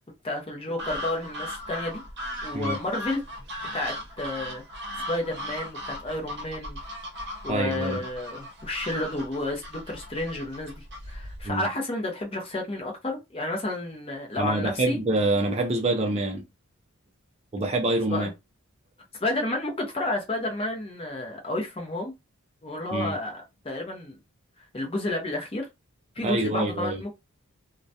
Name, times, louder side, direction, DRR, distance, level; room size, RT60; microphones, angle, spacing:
voice 1, 0.2-2.0 2.4-3.2 3.7-4.6 5.1-6.8 7.4-15.0 18.1-18.3 19.2-22.1 22.6-24.2 24.7-25.7 26.2-27.1, left 2 dB, 25° left, 0.6 m, -31 dB
sound 1, 0.8-11.5, left 1 dB, 50° right, 0.7 m, -37 dB
voice 2, 7.5-8.0 11.4-11.7 14.4-16.4 17.5-18.3 22.9-23.2 26.2-27.0, right 2 dB, 30° right, 0.3 m, -26 dB
2.3 x 2.1 x 2.6 m
head